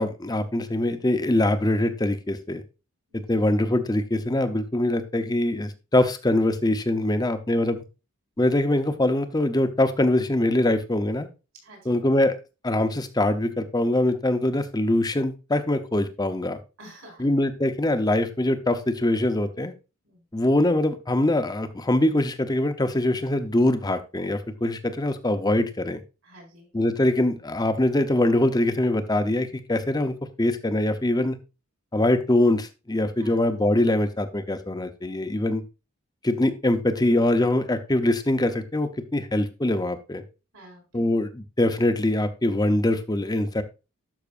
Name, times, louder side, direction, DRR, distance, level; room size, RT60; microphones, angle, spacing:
voice 1, 0.0-2.6 3.1-7.8 8.4-11.3 11.9-12.3 12.6-16.6 17.2-19.7 20.3-26.0 26.7-31.4 31.9-35.6 36.2-40.2 40.9-43.6, left 1 dB, 20° left, 9 dB, 0.7 m, -23 dB
voice 2, 11.6-12.0 16.8-17.3 20.0-20.2 26.2-26.7 33.2-33.4 40.5-41.1, right 1 dB, 70° right, 1 dB, 4.6 m, -49 dB
12.0 x 5.8 x 2.5 m, 0.29 s
head